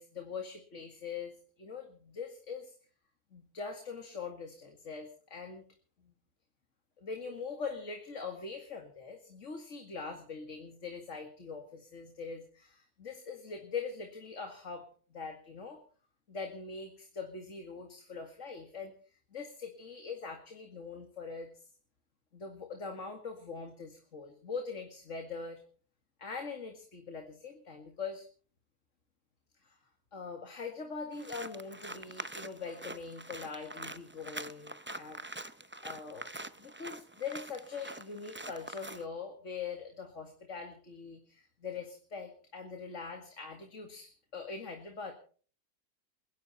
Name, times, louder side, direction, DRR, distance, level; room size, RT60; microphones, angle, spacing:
voice 1, 0.0-2.8 3.3-5.6 6.0-6.1 7.0-15.8 16.3-21.7 22.3-25.6 26.2-28.3 29.6-29.8 30.1-35.2 35.5-35.6 35.8-36.3 36.6-45.1, left 5 dB, 50° left, 4 dB, 2.4 m, -42 dB
sound 1, 31.1-39.0, right 2 dB, 20° right, 0.3 m, -45 dB
29.0 x 11.5 x 4.2 m, 0.44 s
omnidirectional pair, 1.7 m